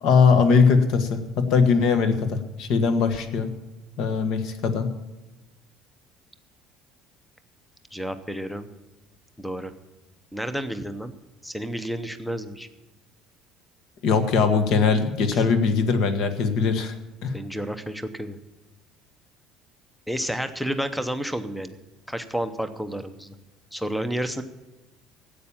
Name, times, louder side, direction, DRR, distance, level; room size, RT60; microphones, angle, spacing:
voice 1, 0.0-3.5 4.0-4.9 14.0-16.9 17.2-17.3, left 5 dB, 50° left, 9 dB, 1.4 m, -20 dB
voice 2, 7.9-8.7 9.4-9.7 10.3-11.1 11.4-12.7 15.3-15.4 17.3-18.4 20.1-21.8 22.1-23.3 23.7-24.4, equal, ahead, 11 dB, 0.7 m, -30 dB
13.5 x 8.6 x 7.1 m, 1.1 s
cardioid pair, 175°, 0 cm